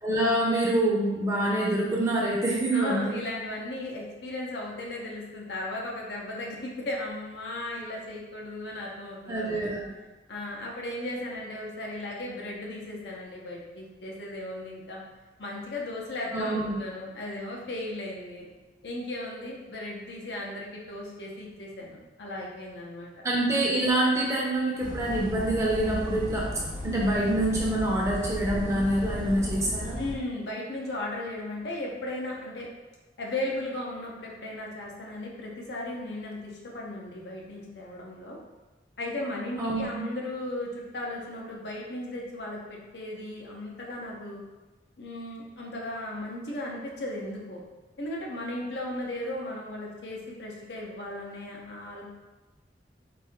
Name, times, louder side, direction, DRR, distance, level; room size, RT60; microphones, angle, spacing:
voice 1, 0.0-3.1 9.3-9.9 16.3-16.8 23.2-26.5 26.8-30.0 39.6-40.0, right 1 dB, 15° right, -4 dB, 0.7 m, -26 dB
voice 2, 2.7-9.6 10.3-15.0 15.4-18.5 18.8-23.1 30.0-32.7 33.2-38.4 39.0-44.4 45.0-47.6 48.0-52.0, left 1 dB, 75° left, -3 dB, 0.8 m, -36 dB
sound 1, 24.8-30.2, left 1 dB, 25° left, 0.4 m, -35 dB
4.2 x 2.7 x 3.5 m, 1.1 s
head